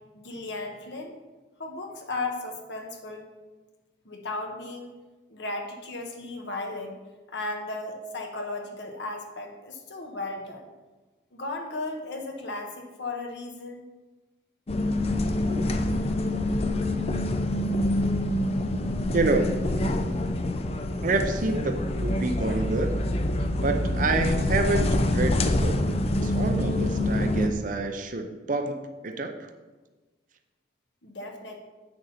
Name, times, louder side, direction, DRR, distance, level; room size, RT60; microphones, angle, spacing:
voice 1, 0.1-1.1 1.6-3.3 4.0-4.9 5.3-6.9 7.3-10.6 11.3-13.8 31.0-31.6, left 2 dB, 75° left, 2 dB, 1.3 m, -35 dB
sound 1, 14.7-27.5, left 1 dB, 35° left, 0.5 m, -26 dB
voice 2, 19.1-19.5 19.8-19.9 21.0-23.0 23.6-26.0 26.2-29.5, right 3 dB, 45° right, 6 dB, 0.6 m, -28 dB
8.6 x 6.6 x 4.2 m, 1.2 s
head